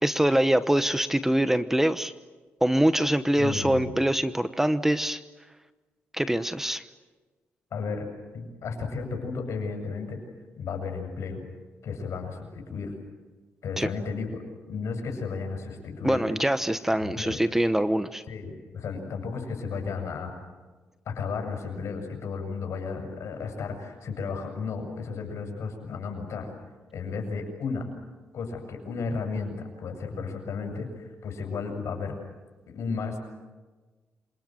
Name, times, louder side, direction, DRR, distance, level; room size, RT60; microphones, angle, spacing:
voice 1, 0.0-2.1 2.6-5.2 6.1-6.8 13.8-13.9 16.0-18.2, right 1 dB, 5° right, 12 dB, 1.0 m, -24 dB
voice 2, 3.4-3.9 7.7-8.0 8.3-10.2 10.6-11.4 11.8-12.9 13.6-14.4 14.7-16.2 17.0-17.4 18.3-20.3 21.1-26.5 26.9-27.9 28.3-32.1 32.7-33.2, left 5 dB, 70° left, 3 dB, 7.5 m, -33 dB
27.5 x 26.5 x 7.8 m, 1.3 s
cardioid pair, 90°, 5 cm